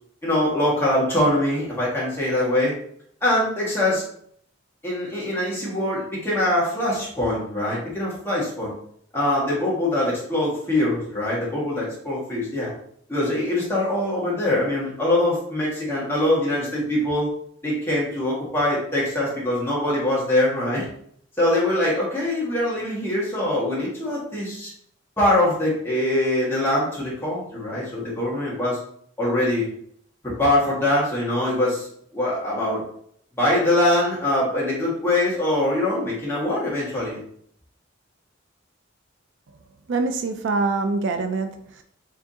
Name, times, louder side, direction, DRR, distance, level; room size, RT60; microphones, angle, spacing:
voice 1, 0.2-2.7 3.2-4.1 4.8-8.7 9.1-12.7 13.1-17.3 17.6-20.9 21.4-24.7 25.2-28.8 29.2-29.7 30.2-31.9 32.1-32.8 33.4-37.2, left 1 dB, 10° left, -7 dB, 1.8 m, -23 dB
voice 2, 39.9-41.8, right 3 dB, 65° right, 7 dB, 0.4 m, -25 dB
4.6 x 3.4 x 2.8 m, 0.65 s
head